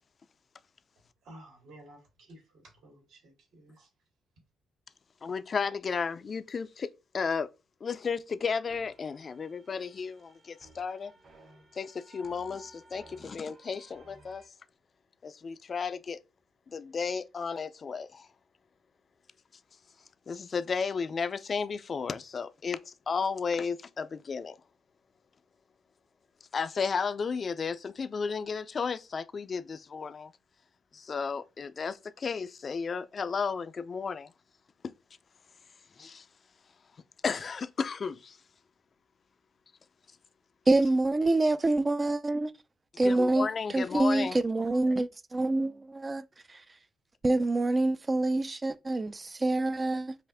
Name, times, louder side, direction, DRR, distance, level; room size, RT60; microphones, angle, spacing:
voice 1, 1.2-3.9, right 1 dB, 80° right, 3.0 m, -53 dB
voice 2, 5.2-6.9 7.1-7.5 7.8-11.1 11.7-14.4 15.2-16.2 16.7-18.3 20.3-24.6 26.5-30.3 30.9-34.3 36.0-36.2 37.2-38.4 43.0-44.4, left 5 dB, 40° left, 0.4 m, -33 dB
sound 1, 8.7-14.5, right 2 dB, 55° right, 2.2 m, -57 dB
voice 3, 40.7-42.5 43.0-43.5 43.7-46.6 47.2-50.2, right 2 dB, 25° right, 0.4 m, -26 dB
5.4 x 2.5 x 3.5 m
cardioid pair, 90°, 0 cm